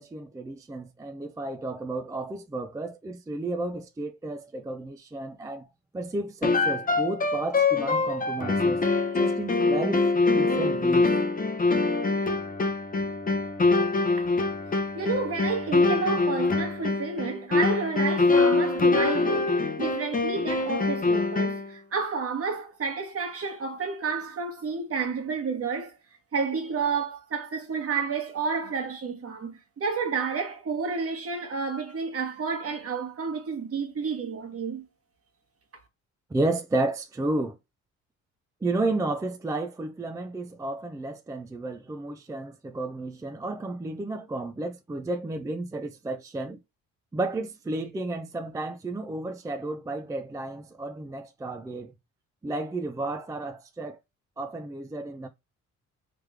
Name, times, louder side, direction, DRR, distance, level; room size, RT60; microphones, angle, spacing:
voice 1, 0.0-5.7 5.9-8.9 9.1-10.1 10.3-11.2 11.6-11.8 36.3-37.6 38.6-46.6 47.1-51.9 52.4-54.0 54.4-55.3, right 2 dB, 10° right, 0.4 m, -32 dB
sound 1, 6.4-21.7, left 3 dB, 30° left, 0.7 m, -24 dB
voice 2, 14.9-25.9 26.3-34.8, right 5 dB, 50° right, 1.3 m, -30 dB
3.4 x 3.3 x 3.2 m
cardioid pair, 90°, 30 cm